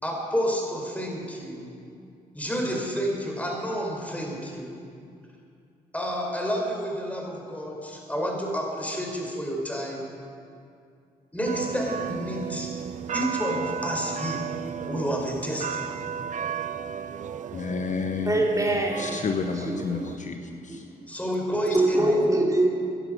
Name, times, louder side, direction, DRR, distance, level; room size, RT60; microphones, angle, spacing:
voice 1, 0.0-1.7 2.3-4.7 5.9-10.1 11.3-12.7 13.1-14.5 14.9-16.0 21.1-22.4, equal, 10° left, 0 dB, 4.8 m, -30 dB
sound 1, 11.5-20.2, right 7 dB, 45° right, 0.5 m, -34 dB
voice 2, 17.5-18.4 19.0-20.9 21.7-21.8, left 5 dB, 45° left, 6 dB, 0.9 m, -31 dB
voice 3, 18.3-19.2 19.7-20.8 21.7-22.7, right 1 dB, 20° right, -1 dB, 3.2 m, -24 dB
17.0 x 11.0 x 6.4 m, 2.4 s
hypercardioid pair, 50°, 17 cm